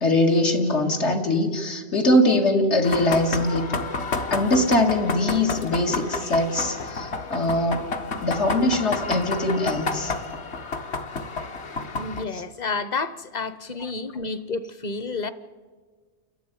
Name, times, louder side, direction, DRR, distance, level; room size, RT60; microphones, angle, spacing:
voice 1, 0.0-3.6 4.3-7.9 8.2-10.1, left 1 dB, 90° left, 2.3 m, -22 dB
sound 1, 2.8-12.2, left 3 dB, 75° left, 1.5 m, -30 dB
voice 2, 12.0-15.3, left 4 dB, 45° left, 0.9 m, -30 dB
29.0 x 12.0 x 9.2 m
omnidirectional pair, 1.1 m